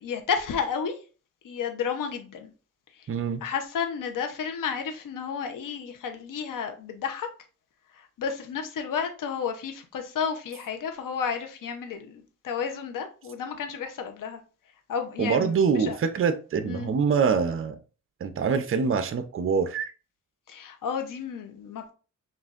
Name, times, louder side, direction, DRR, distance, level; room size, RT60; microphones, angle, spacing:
voice 1, 0.0-1.0 1.4-2.5 3.4-7.3 7.9-14.4 14.9-16.0 16.6-16.9 20.5-21.9, left 6 dB, 80° left, 0.8 m, -32 dB
voice 2, 3.1-3.4 15.2-17.8 18.2-19.9, right 6 dB, 40° right, 0.6 m, -25 dB
6.0 x 2.5 x 2.4 m
cardioid pair, 85°, 32 cm